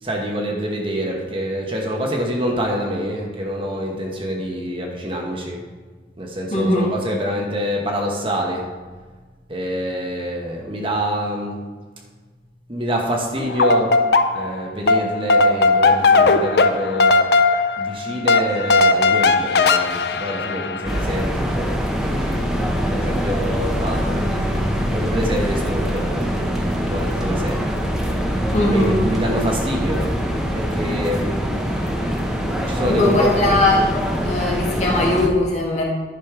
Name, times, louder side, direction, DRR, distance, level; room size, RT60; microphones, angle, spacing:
voice 1, 0.0-5.6 6.2-8.7 9.5-11.6 12.7-14.0 14.3-17.2 17.8-22.4 22.9-27.6 28.5-30.1 30.5-31.5 32.7-33.2, equal, 30° right, 0 dB, 1.1 m, -26 dB
voice 2, 6.5-6.8 28.5-29.0 32.9-33.9 34.2-35.8, left 1 dB, 40° left, -3 dB, 1.8 m, -19 dB
sound 1, 13.4-14.6 14.9-21.0, left 3 dB, 60° left, 0.5 m, -17 dB
sound 2, 20.9-35.3, equal, 5° right, 0.9 m, -23 dB
10.5 x 5.2 x 4.9 m, 1.4 s
head